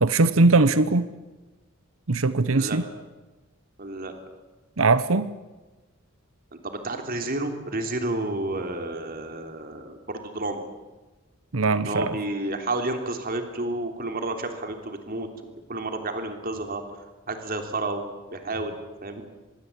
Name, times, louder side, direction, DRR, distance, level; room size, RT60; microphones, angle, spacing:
voice 1, 0.0-1.1 2.1-2.8 4.8-5.3 11.5-12.1, right 3 dB, 85° right, 14 dB, 1.0 m, -20 dB
voice 2, 3.8-4.1 6.6-10.6 11.8-15.3 15.7-16.8 17.3-19.2, right 2 dB, 45° right, 5 dB, 3.3 m, -31 dB
26.0 x 21.5 x 8.5 m, 1.2 s
head